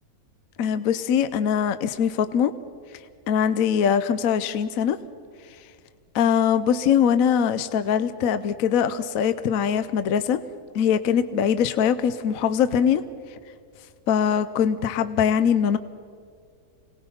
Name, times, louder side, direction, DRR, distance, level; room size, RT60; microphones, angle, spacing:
voice 1, 0.6-2.5 3.3-5.0 6.1-10.4 10.7-13.0 14.1-15.8, left 8 dB, 70° left, 12 dB, 1.1 m, -22 dB
26.5 x 18.5 x 5.6 m, 2.2 s
omnidirectional pair, 1.6 m